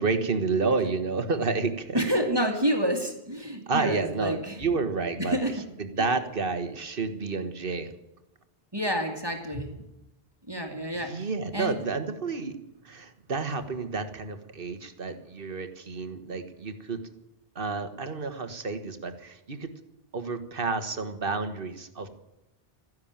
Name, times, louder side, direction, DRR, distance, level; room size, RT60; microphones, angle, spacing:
voice 1, 0.0-2.2 3.7-7.9 10.9-12.6 12.8-17.0 17.5-19.7 20.1-22.1, right 4 dB, 60° right, 9 dB, 1.7 m, -30 dB
voice 2, 1.9-4.6 5.3-5.5 8.7-9.7 10.5-11.3 11.5-11.8, equal, 25° right, 3 dB, 2.3 m, -28 dB
14.5 x 11.0 x 8.8 m, 0.93 s
omnidirectional pair, 1.0 m